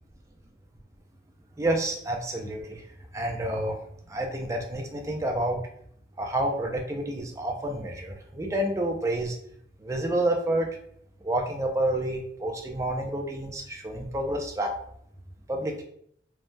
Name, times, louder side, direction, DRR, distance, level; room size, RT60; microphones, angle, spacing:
voice 1, 1.6-2.8 3.1-3.8 4.1-5.6 6.2-9.3 9.8-10.8 11.2-14.7 15.5-15.8, right 1 dB, 15° right, 2 dB, 0.4 m, -29 dB
3.3 x 2.1 x 2.5 m, 0.67 s
head